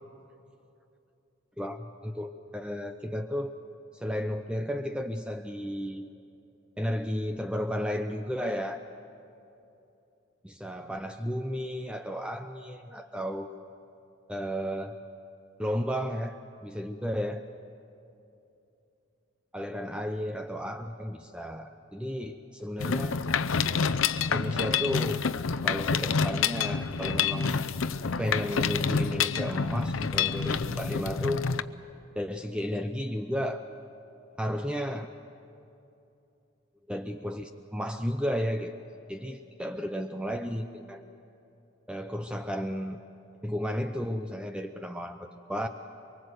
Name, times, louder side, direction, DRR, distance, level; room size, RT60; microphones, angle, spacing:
voice 1, 1.6-3.5 3.9-6.1 6.8-8.8 10.4-13.5 14.3-15.0 15.6-17.4 19.5-23.2 24.3-25.2 25.6-27.7 28.2-31.4 32.1-33.7 34.4-35.1 36.9-38.7 39.1-41.0 41.9-43.0 43.4-45.7, equal, 5° right, 6 dB, 0.7 m, -33 dB
Mechanisms, 22.8-31.6, left 6 dB, 85° left, 0.7 m, -28 dB
24.0 x 24.0 x 8.0 m, 2.7 s
head